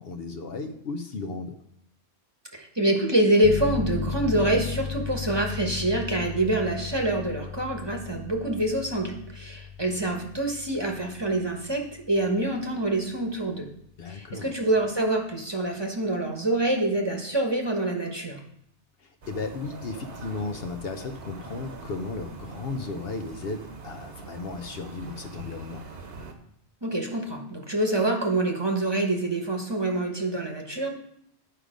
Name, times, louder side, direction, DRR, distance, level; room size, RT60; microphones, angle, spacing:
voice 1, 0.0-1.5 14.0-14.5 19.3-25.8, left 3 dB, 60° left, 6 dB, 0.9 m, -35 dB
voice 2, 2.5-13.7 14.0-18.4 26.8-30.9, right 1 dB, 25° right, 1 dB, 1.1 m, -26 dB
sound 1, 3.4-14.0, left 6 dB, 35° left, 0.5 m, -36 dB
sound 2, 19.2-26.3, right 3 dB, 60° right, 1.2 m, -43 dB
10.0 x 5.1 x 5.0 m, 0.74 s
omnidirectional pair, 1.2 m